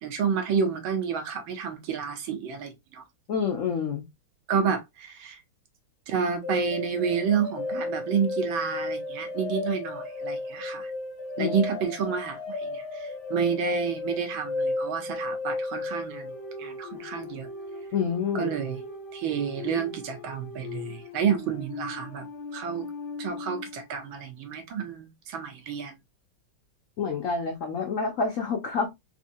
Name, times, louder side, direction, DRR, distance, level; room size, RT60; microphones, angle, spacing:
voice 1, 0.0-3.0 4.5-5.4 6.1-10.9 11.4-16.3 16.6-17.5 18.3-18.8 19.1-22.3 22.5-22.8 23.2-25.9, right 7 dB, 70° right, 1.6 m, -29 dB
voice 2, 3.3-4.0 11.4-11.5 17.9-18.5 27.0-28.9, left 5 dB, 85° left, 0.7 m, -28 dB
sound 1, 6.4-23.8, left 2 dB, 50° left, 0.9 m, -35 dB
4.2 x 2.8 x 2.6 m
omnidirectional pair, 2.3 m